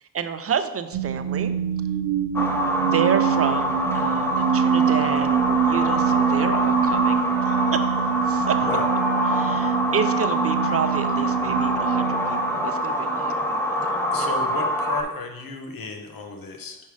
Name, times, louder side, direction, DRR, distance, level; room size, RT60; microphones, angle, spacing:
voice 1, 0.0-1.5 2.8-7.9 8.3-8.6 9.2-14.4, right 7 dB, 40° right, 10 dB, 0.6 m, -30 dB
sound 1, 0.9-13.1, right 8 dB, 85° right, 0.6 m, -25 dB
sound 2, 2.3-15.0, equal, 5° left, 0.9 m, -25 dB
Wind instrument woodwind instrument, 8.3-14.2, right 4 dB, 20° right, 0.9 m, -44 dB
voice 2, 14.1-16.8, left 3 dB, 70° left, 5 dB, 1.1 m, -34 dB
5.3 x 5.2 x 4.8 m, 0.99 s
cardioid pair, 80°, 35 cm